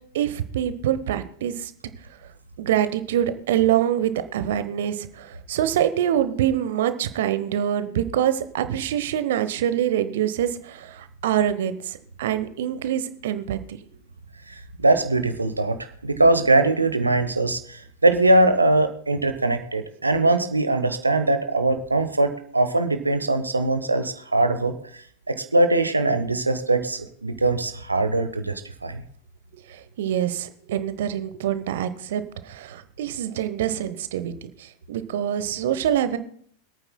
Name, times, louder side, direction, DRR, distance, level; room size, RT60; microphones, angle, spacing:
voice 1, 0.1-1.7 2.6-13.6 29.7-36.2, right 10 dB, 55° right, 11 dB, 0.9 m, -25 dB
voice 2, 14.5-15.8 16.0-29.0, right 2 dB, 80° right, 8 dB, 1.0 m, -21 dB
26.0 x 9.0 x 2.2 m, 0.63 s
figure-of-eight pair, 90°, 0 cm